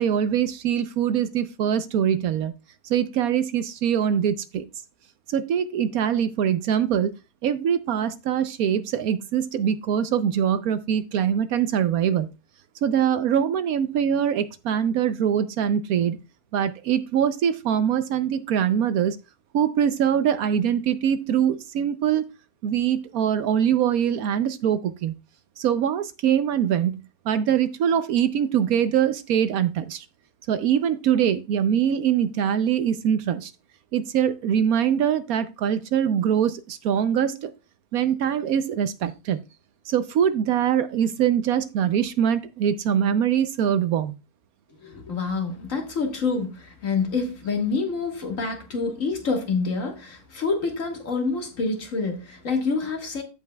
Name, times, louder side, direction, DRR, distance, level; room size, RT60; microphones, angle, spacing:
voice 1, 0.0-2.5 2.9-4.6 5.3-7.1 7.4-12.3 12.8-16.2 16.5-19.2 19.5-22.2 22.6-25.1 25.6-27.0 27.3-30.0 30.5-33.5 33.9-37.5 37.9-39.4 39.9-44.1, right 9 dB, 70° right, 1.0 m, -23 dB
voice 2, 44.8-53.2, left 4 dB, 55° left, 1.9 m, -27 dB
14.5 x 5.4 x 2.2 m
omnidirectional pair, 1.7 m